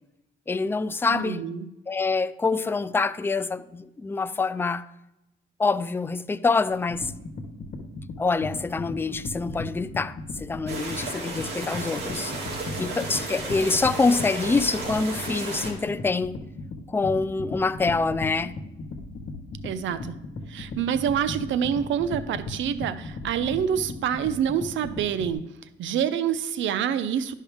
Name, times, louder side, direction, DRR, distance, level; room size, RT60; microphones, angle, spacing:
voice 1, 0.5-1.5 1.9-4.9 5.6-7.1 8.2-12.3 12.8-16.4 16.9-18.5, left 4 dB, 10° left, 0.3 m, -26 dB
voice 2, 1.1-1.7 19.6-20.2 20.5-25.4 25.8-27.4, right 8 dB, 75° right, 0.6 m, -27 dB
sound 1, 6.7-25.3, left 3 dB, 55° left, 1.3 m, -36 dB
sound 2, 10.7-15.7, right 3 dB, 60° right, 2.3 m, -34 dB
11.5 x 5.5 x 3.5 m
cardioid pair, 90°, 20 cm